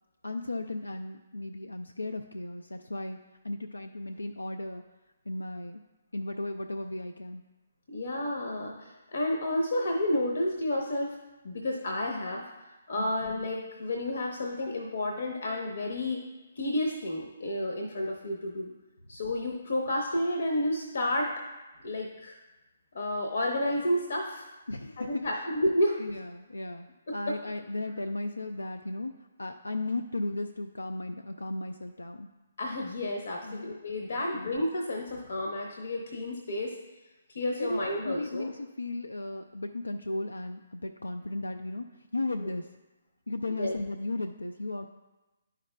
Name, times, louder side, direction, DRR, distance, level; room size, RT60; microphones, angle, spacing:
voice 1, 0.2-3.2 3.4-4.8 5.3-5.8 6.1-7.4 13.0-13.1 24.7-25.3 26.0-29.1 29.4-32.3 33.4-33.6 34.3-34.5 37.6-42.7 43.3-44.9, left 2 dB, 90° left, 5 dB, 0.3 m, -35 dB
voice 2, 7.9-11.2 11.4-12.4 12.9-16.2 16.6-18.7 19.1-21.3 21.8-22.4 22.9-24.5 25.0-26.0 27.1-27.4 32.6-36.7 37.3-38.5 42.4-42.5 43.5-43.7, left 1 dB, 65° left, 1 dB, 0.8 m, -31 dB
10.5 x 4.8 x 2.2 m, 1.1 s
figure-of-eight pair, 140°, 0 cm